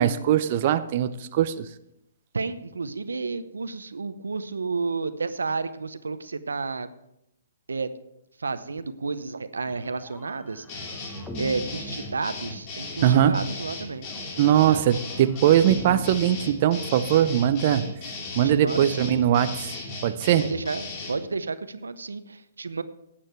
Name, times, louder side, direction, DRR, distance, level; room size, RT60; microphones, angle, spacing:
voice 1, 0.0-1.7 13.0-13.4 14.4-17.9 18.3-19.7 20.0-20.5, right 10 dB, 45° right, 11 dB, 0.6 m, -21 dB
voice 2, 2.3-6.9 7.7-7.9 8.4-10.9 11.4-14.1 14.4-14.8 18.4-19.1 20.4-22.8, right 4 dB, 90° right, 13 dB, 0.7 m, -31 dB
sound 1, 9.7-12.9 14.0-17.3, left 2 dB, 5° left, 1.1 m, -43 dB
sound 2, 10.7-21.2, left 3 dB, 35° left, 2.6 m, -37 dB
11.5 x 8.7 x 4.5 m, 0.82 s
hypercardioid pair, 135°, 0 cm